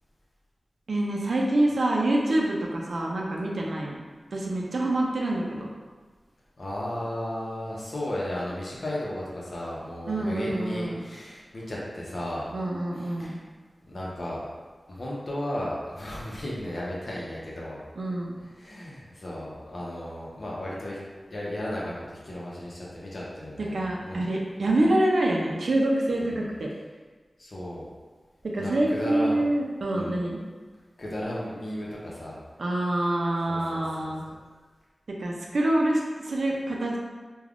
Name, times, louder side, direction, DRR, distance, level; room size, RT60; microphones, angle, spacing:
voice 1, 0.9-4.0 4.3-5.7 10.1-11.0 12.5-13.4 18.0-18.4 23.6-26.7 28.5-30.4 32.6-34.2 35.1-37.0, right 1 dB, 85° right, -2 dB, 0.4 m, -26 dB
voice 2, 6.6-12.5 13.0-13.4 13.8-14.4 14.9-17.8 18.6-21.0 21.3-24.2 26.2-26.4 27.4-27.8 28.6-29.4 29.9-30.2 31.0-32.3 33.5-34.1, left 1 dB, 60° left, -5 dB, 0.7 m, -34 dB
3.3 x 2.2 x 2.4 m, 1.4 s
wide cardioid pair, 65°, 0 cm